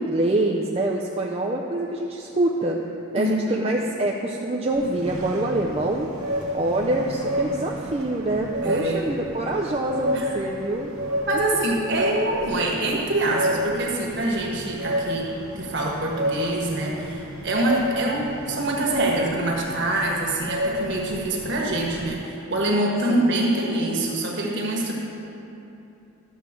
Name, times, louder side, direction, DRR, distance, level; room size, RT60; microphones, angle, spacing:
voice 1, 0.0-2.8 3.1-6.1 6.5-10.9, right 2 dB, 25° right, -1 dB, 0.4 m, -25 dB
voice 2, 3.2-3.6 8.6-9.0 10.1-10.3 11.3-15.3 15.5-24.9, right 1 dB, 55° right, -2 dB, 1.5 m, -25 dB
sound 1, 4.7-22.1, equal, 75° right, 1.0 m, -31 dB
11.5 x 7.2 x 3.7 m, 2.9 s
head